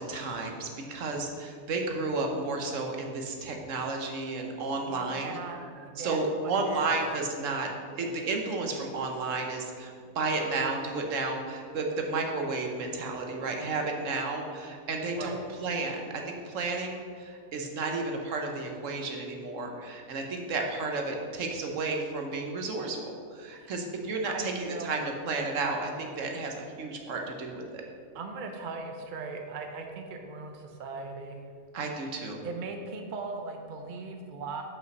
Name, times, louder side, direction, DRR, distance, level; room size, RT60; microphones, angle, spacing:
voice 1, 0.0-5.4 6.0-7.7 8.0-27.8 31.7-32.4, right 3 dB, 65° right, 2 dB, 1.2 m, -32 dB
voice 2, 4.8-7.0 15.1-15.4 23.6-23.7 24.2-24.9 28.1-31.4 32.4-34.6, right 4 dB, 45° right, 4 dB, 0.7 m, -39 dB
6.1 x 5.3 x 6.0 m, 2.2 s
omnidirectional pair, 1.5 m